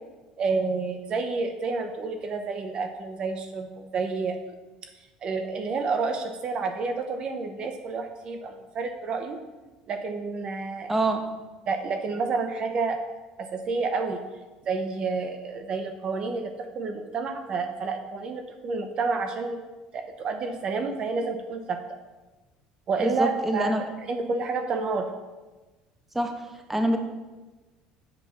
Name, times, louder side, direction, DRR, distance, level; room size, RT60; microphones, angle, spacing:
voice 1, 0.4-4.4 5.2-9.4 9.9-10.9 11.7-13.0 13.4-14.2 14.6-19.6 19.9-21.8 22.9-25.1, right 4 dB, 40° right, 6 dB, 0.9 m, -29 dB
voice 2, 10.9-11.2 23.0-23.8 26.1-26.3 26.7-27.0, right 1 dB, 10° right, 4 dB, 1.1 m, -25 dB
7.9 x 7.2 x 5.8 m, 1.2 s
cardioid pair, 125°, 2 cm